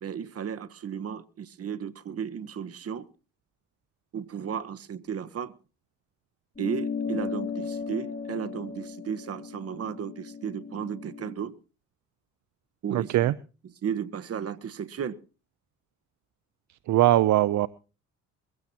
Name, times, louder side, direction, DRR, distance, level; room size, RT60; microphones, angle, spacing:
voice 1, 0.0-3.1 4.1-5.5 6.6-11.6 12.8-13.3 13.6-15.2, right 7 dB, 50° right, 1.3 m, -34 dB
sound 1, 6.6-11.4, left 5 dB, 35° left, 3.9 m, -36 dB
voice 2, 12.9-13.3 16.9-17.7, right 14 dB, 70° right, 0.6 m, -21 dB
22.0 x 15.5 x 2.9 m
cardioid pair, 90°, 30 cm